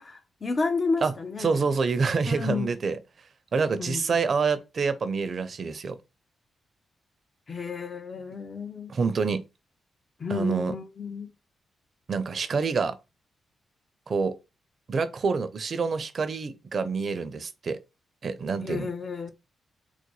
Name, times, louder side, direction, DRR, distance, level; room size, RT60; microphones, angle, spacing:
voice 1, 0.0-1.6 2.3-2.7 3.8-4.0 7.5-8.9 10.2-11.3 18.6-19.3, left 4 dB, 45° left, 0.7 m, -31 dB
voice 2, 1.4-3.0 3.5-6.0 8.9-9.4 10.3-10.7 12.1-13.0 14.1-14.3 14.9-17.8 18.2-18.9, right 5 dB, 55° right, 0.5 m, -27 dB
3.8 x 2.1 x 3.1 m
supercardioid pair, 55°, 0 cm